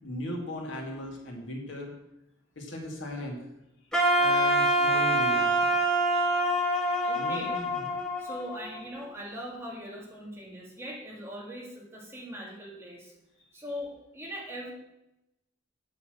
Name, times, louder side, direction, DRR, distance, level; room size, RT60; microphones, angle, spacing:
voice 1, 0.0-1.9 2.6-3.4 4.2-5.7 6.0-7.9, left 1 dB, 75° left, 0 dB, 2.4 m, -38 dB
Wind instrument woodwind instrument, 3.9-9.0, right 1 dB, 5° left, 1.5 m, -25 dB
voice 2, 7.1-7.5 8.2-13.1 13.5-14.7, equal, 15° right, -2 dB, 2.2 m, -40 dB
8.5 x 6.9 x 6.4 m, 0.89 s
head